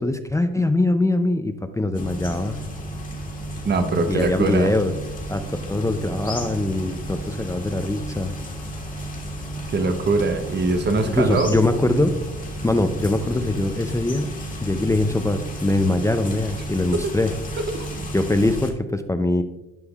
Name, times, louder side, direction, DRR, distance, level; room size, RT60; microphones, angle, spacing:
voice 1, 0.0-2.6 4.1-4.9 5.3-8.3 11.1-12.2 12.6-14.3 14.6-17.3 18.1-19.4, left 2 dB, 10° left, 7 dB, 0.4 m, -22 dB
sound 1, 1.9-18.7, right 1 dB, 25° left, 1.7 m, -33 dB
voice 2, 3.6-4.7 9.7-11.6 16.9-17.1 17.7-18.1, right 3 dB, 35° right, 7 dB, 0.8 m, -22 dB
11.5 x 5.3 x 2.4 m, 1.0 s
cardioid pair, 90°, 30 cm